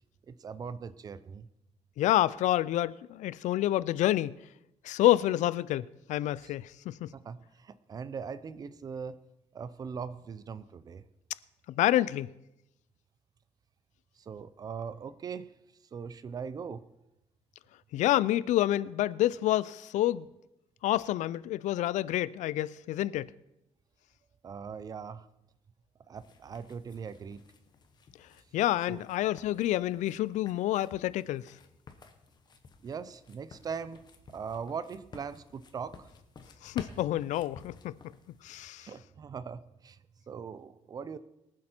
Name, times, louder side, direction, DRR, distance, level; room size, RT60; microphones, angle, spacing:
voice 1, 0.3-1.5 6.4-6.5 7.1-9.2 9.5-11.0 14.2-15.5 15.9-16.9 24.4-25.3 26.1-27.4 28.9-29.0 32.8-34.0 34.3-36.1 38.8-41.2, right 6 dB, 30° right, 0.5 m, -40 dB
voice 2, 2.0-4.4 4.8-7.1 11.8-12.3 17.9-20.3 20.8-23.3 28.5-31.5 36.6-37.9 38.4-38.9, left 14 dB, 85° left, 0.4 m, -28 dB
sound 1, 26.1-38.7, left 5 dB, 35° left, 1.1 m, -53 dB
23.0 x 7.6 x 4.4 m
cardioid pair, 170°, 12 cm